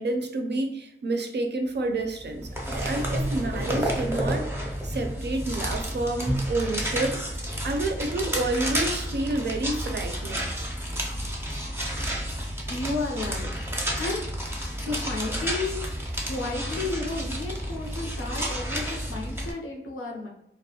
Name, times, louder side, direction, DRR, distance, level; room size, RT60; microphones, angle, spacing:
voice 1, 0.0-7.2 7.6-10.5, right 2 dB, 55° right, 4 dB, 0.4 m, -29 dB
sound 1, 2.2-19.5, equal, 10° right, 0.6 m, -30 dB
voice 2, 12.7-13.5 14.0-14.3 14.8-15.8 16.3-20.3, left 3 dB, 90° left, 0 dB, 0.6 m, -32 dB
2.3 x 2.1 x 2.8 m, 0.78 s
wide cardioid pair, 70°, 21 cm